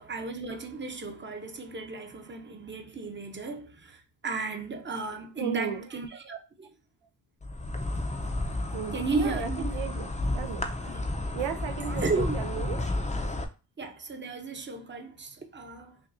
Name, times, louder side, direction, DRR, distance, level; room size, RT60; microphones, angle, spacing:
voice 1, 0.0-6.7 8.9-9.7 10.8-11.1 11.9-12.4 12.8-12.9 13.8-16.0, right 3 dB, 25° right, 0.8 m, -34 dB
voice 2, 5.4-5.9 8.7-10.7 11.3-12.8, right 10 dB, 80° right, 0.6 m, -35 dB
Insect, 7.4-13.4, left 2 dB, 15° left, 0.6 m, -32 dB
5.8 x 2.4 x 2.6 m
cardioid pair, 70°, 46 cm